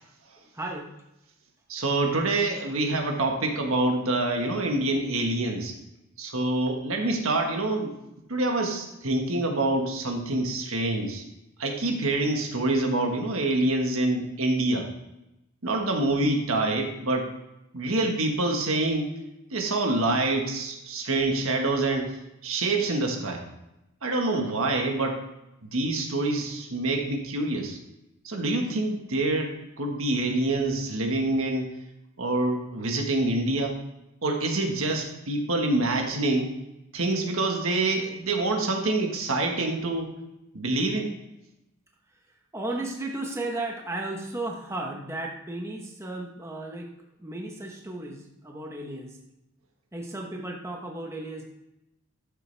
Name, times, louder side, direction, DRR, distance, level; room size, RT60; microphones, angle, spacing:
voice 1, 0.5-0.9 42.5-46.9 47.2-49.2 49.9-51.4, right 2 dB, 10° right, 1 dB, 1.0 m, -34 dB
voice 2, 1.7-5.7 6.2-7.9 8.3-11.3 11.6-14.9 15.6-17.3 17.7-19.1 19.5-22.2 22.4-23.5 24.0-25.2 25.6-27.8 28.2-31.7 32.2-33.8 34.2-36.5 36.9-40.1 40.5-41.1, right 2 dB, 65° right, 3 dB, 1.5 m, -26 dB
13.0 x 7.0 x 3.4 m, 0.90 s
head